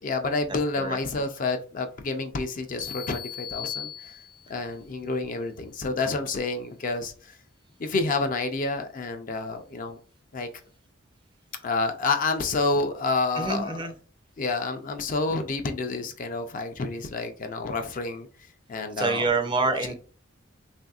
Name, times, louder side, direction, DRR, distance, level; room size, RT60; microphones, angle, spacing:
voice 1, 0.0-4.1 4.5-7.3 7.8-10.0 10.3-10.5 11.6-13.9 14.4-18.3 18.7-19.3 19.9-20.0, left 3 dB, 45° left, 0.4 m, -29 dB
sound 1, 2.8-4.7, left 9 dB, 75° left, 0.7 m, -37 dB
voice 2, 13.4-13.9 19.0-19.9, right 3 dB, 25° right, 0.4 m, -26 dB
3.3 x 2.6 x 2.3 m
head